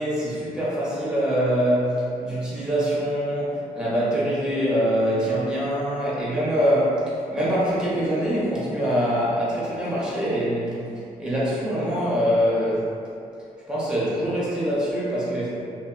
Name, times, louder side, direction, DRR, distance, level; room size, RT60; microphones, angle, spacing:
voice 1, 0.0-10.8 11.2-12.9 13.7-15.6, equal, 5° right, -9 dB, 1.0 m, -24 dB
2.6 x 2.4 x 2.3 m, 2.6 s
cardioid pair, 60°, 16 cm